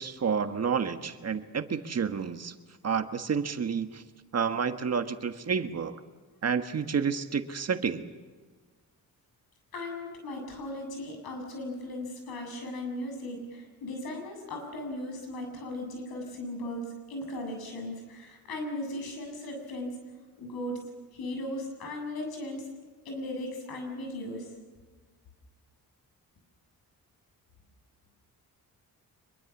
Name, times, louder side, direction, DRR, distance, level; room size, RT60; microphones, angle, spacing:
voice 1, 0.0-2.5 2.8-4.0 4.3-6.0 6.4-8.1, right 6 dB, 45° right, 8 dB, 1.5 m, -30 dB
voice 2, 9.7-20.0 20.4-20.8 21.1-22.7 23.0-24.5, left 1 dB, 80° left, 3 dB, 7.7 m, -37 dB
25.0 x 22.5 x 7.3 m, 1.4 s
cardioid pair, 95°, 36 cm